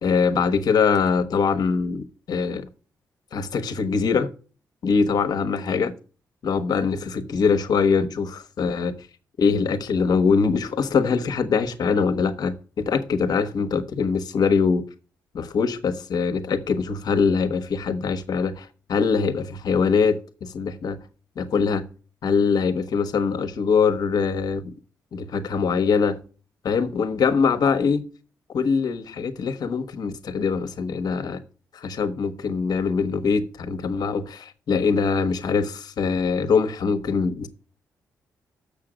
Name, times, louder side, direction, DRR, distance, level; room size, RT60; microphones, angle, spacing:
voice 1, 0.0-2.7 3.3-4.3 4.8-5.9 6.4-9.0 9.4-14.9 15.3-21.0 21.4-21.8 22.2-24.7 25.1-26.2 26.6-28.1 28.5-31.4 31.7-37.5, left 5 dB, 65° left, 1.1 m, -23 dB
6.8 x 6.7 x 5.0 m
supercardioid pair, 55°, 7 cm